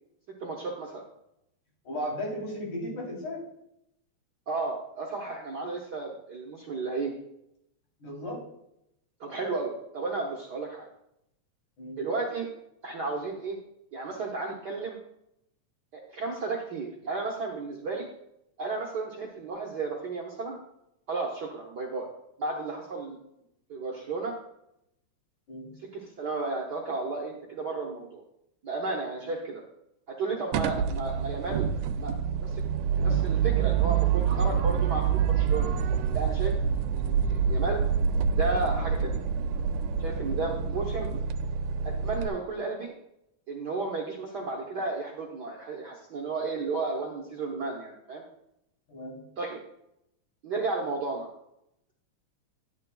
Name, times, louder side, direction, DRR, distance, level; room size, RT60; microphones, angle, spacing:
voice 1, 0.4-1.0 4.5-7.1 9.2-10.9 12.0-12.5 12.8-13.6 13.9-15.0 15.9-18.1 18.6-20.6 21.1-22.1 22.4-23.2 23.7-24.3 25.9-28.2 28.6-29.6 30.1-31.7 31.9-32.1 32.4-32.6 33.0-35.7 36.1-36.5 36.9-37.8 38.3-39.2 40.0-41.1 42.0-42.9 43.5-48.2 49.4-49.6 50.4-51.3, right 3 dB, 60° right, -2 dB, 1.0 m, -33 dB
voice 2, 1.8-3.4 8.0-8.4 11.8-12.0 25.5-25.7 29.2-29.3 36.5-36.7 40.3-40.5 48.9-49.2, left 1 dB, 85° left, -4 dB, 4.7 m, -36 dB
sound 1, 30.5-42.3, right 7 dB, 85° right, 1.9 m, -27 dB
11.5 x 9.4 x 2.3 m, 0.80 s
omnidirectional pair, 3.3 m